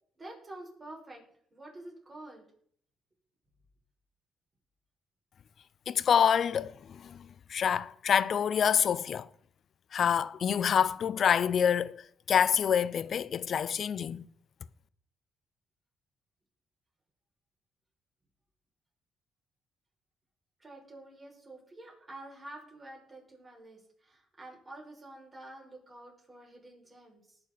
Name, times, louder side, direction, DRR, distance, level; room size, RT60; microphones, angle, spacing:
voice 1, 0.2-1.2 1.5-2.5 20.6-27.4, right 1 dB, 30° right, 6.0 m, -48 dB
voice 2, 5.9-9.3 9.9-14.3, left 8 dB, 55° left, 0.5 m, -27 dB
19.5 x 6.8 x 4.1 m
cardioid pair, 90°, 0 cm